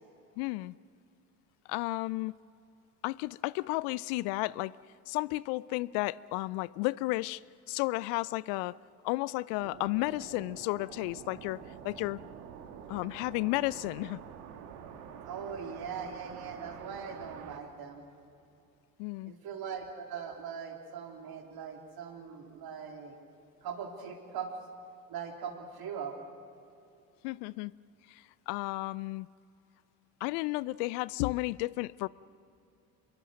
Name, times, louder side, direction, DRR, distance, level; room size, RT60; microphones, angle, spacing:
voice 1, 0.4-0.7 1.7-2.3 3.0-4.8 5.1-8.8 9.0-12.2 12.9-14.2 19.0-19.3 27.2-27.7 28.1-29.3 30.2-32.1, left 21 dB, 60° left, 0.5 m, -33 dB
sound 1, 9.6-17.6, right 7 dB, 75° right, 1.9 m, -47 dB
voice 2, 15.2-18.0 19.3-23.2 23.6-24.5 25.1-26.2, right 7 dB, 50° right, 3.5 m, -41 dB
26.5 x 22.5 x 6.5 m
hypercardioid pair, 60°, 48 cm